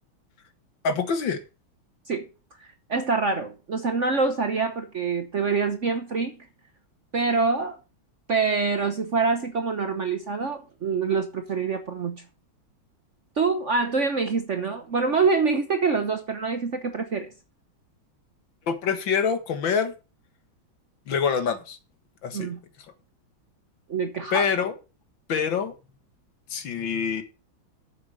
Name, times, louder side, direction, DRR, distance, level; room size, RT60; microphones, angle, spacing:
voice 1, 0.8-1.4 18.7-19.9 21.1-21.8 22.2-22.5 24.3-24.7 25.3-25.7 26.5-27.2, left 6 dB, 70° left, 2.2 m, -25 dB
voice 2, 2.9-6.4 7.1-7.8 8.3-12.2 13.4-17.3 22.3-22.6 23.9-24.5, right 4 dB, 50° right, 1.0 m, -25 dB
9.4 x 6.9 x 6.5 m
omnidirectional pair, 2.2 m